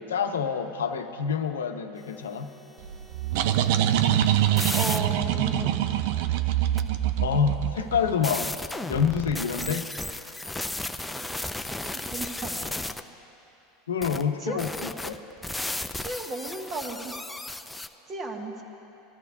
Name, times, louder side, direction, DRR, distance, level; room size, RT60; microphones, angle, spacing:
voice 1, 0.0-2.5 7.2-8.5 8.8-9.9 13.9-15.2, left 6 dB, 85° left, 6 dB, 0.8 m, -27 dB
sound 1, 2.8-8.4, right 12 dB, 65° right, 0.5 m, -24 dB
sound 2, 3.3-5.0 6.8-6.9 8.2-13.0 14.0-14.2 14.6-17.9, left 2 dB, 5° left, 0.5 m, -34 dB
voice 2, 4.7-5.8 11.8-12.7 14.4-14.6 16.0-17.1 18.1-18.6, right 3 dB, 30° right, 2 dB, 1.7 m, -34 dB
21.5 x 13.5 x 2.7 m, 2.9 s
hypercardioid pair, 95°, 0 cm